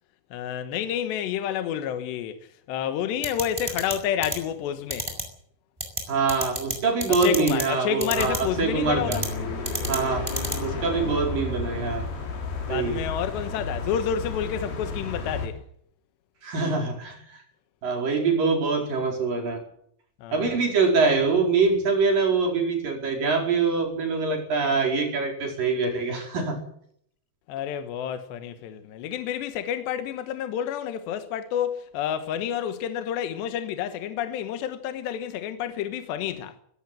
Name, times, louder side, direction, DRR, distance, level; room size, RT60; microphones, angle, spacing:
voice 1, 0.3-2.4 2.7-5.1 7.1-9.3 10.9-11.1 12.6-15.6 20.2-20.6 27.5-36.5, left 9 dB, 75° left, 3.4 m, -29 dB
sound 1, 3.2-3.9 4.2-4.3 4.9-5.2 5.8-6.0 6.3-6.7 7.0-7.6 8.0-8.4 9.1-9.3 9.6-10.0 10.3-10.5, equal, 5° right, 4.8 m, -28 dB
voice 2, 6.1-9.2 9.9-10.3 10.6-12.1 12.7-13.0 16.4-17.4 17.8-19.6 20.3-26.6, right 4 dB, 50° right, 6.4 m, -24 dB
sound 2, 8.1-15.5, left 3 dB, 60° left, 5.7 m, -32 dB
18.5 x 17.0 x 9.1 m
omnidirectional pair, 5.1 m